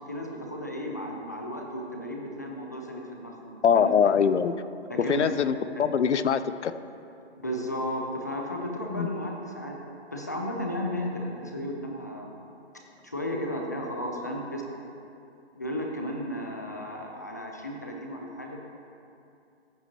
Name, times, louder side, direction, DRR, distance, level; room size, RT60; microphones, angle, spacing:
voice 1, 0.1-3.9 4.9-5.2 5.8-5.9 7.4-9.8 10.1-12.3 13.0-14.6 15.5-18.6, equal, 15° left, 1 dB, 0.4 m, -34 dB
voice 2, 3.6-4.6 5.0-6.7 9.0-9.1, left 7 dB, 90° left, 12 dB, 0.6 m, -23 dB
14.5 x 8.3 x 2.8 m, 2.7 s
hypercardioid pair, 155°, 34 cm